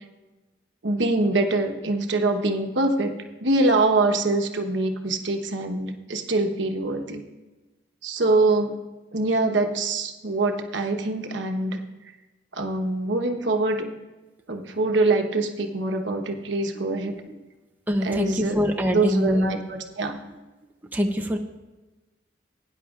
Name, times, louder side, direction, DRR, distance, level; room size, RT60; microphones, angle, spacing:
voice 1, 0.8-3.1 3.4-7.2 8.0-8.7 9.1-11.8 12.5-13.9 14.5-17.2 18.0-18.6 18.9-20.2, right 2 dB, 75° right, 5 dB, 1.1 m, -24 dB
voice 2, 16.7-17.4 17.9-19.5 20.3-20.4 20.8-21.4, equal, 10° right, 2 dB, 0.6 m, -25 dB
18.5 x 9.9 x 2.4 m, 1.2 s
head